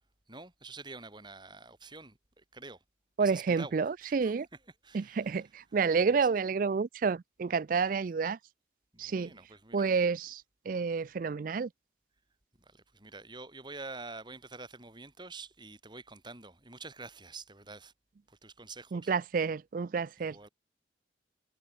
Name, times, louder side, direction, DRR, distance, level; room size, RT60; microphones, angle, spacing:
voice 1, 0.3-2.8 3.2-3.7 4.0-5.5 6.0-6.3 7.8-8.0 8.9-10.1 11.0-11.1 12.6-17.9 18.3-19.1 20.2-20.5, right 3 dB, 25° right, 5.2 m, -48 dB
voice 2, 3.2-4.5 4.9-8.4 9.0-9.3 9.7-11.7 18.9-20.4, right 5 dB, 45° right, 0.4 m, -29 dB
head